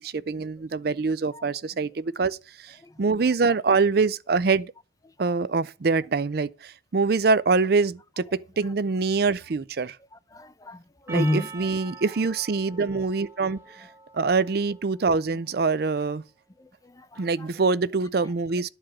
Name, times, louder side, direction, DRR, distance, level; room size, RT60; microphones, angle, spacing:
voice 1, 0.0-4.7 5.2-10.0 11.1-13.9 14.1-16.2 17.2-18.7, right 4 dB, 50° right, 0.5 m, -25 dB
voice 2, 10.1-11.5 16.6-17.5, left 1 dB, 20° left, 0.5 m, -31 dB
Percussion, 11.1-15.6, right 3 dB, 15° right, 1.1 m, -45 dB
11.5 x 4.9 x 7.3 m
head